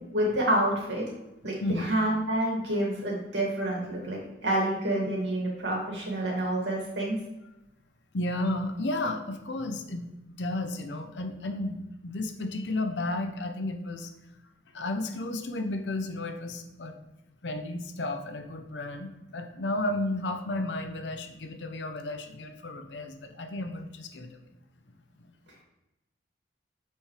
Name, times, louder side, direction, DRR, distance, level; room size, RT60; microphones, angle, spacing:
voice 1, 0.1-1.0 1.4-7.2, right 1 dB, 90° right, -2 dB, 2.3 m, -28 dB
voice 2, 1.6-1.9 8.1-14.1 14.7-17.0 17.4-24.4 25.2-25.3, left 2 dB, 85° left, 5 dB, 0.8 m, -33 dB
8.8 x 4.4 x 3.3 m, 0.96 s
head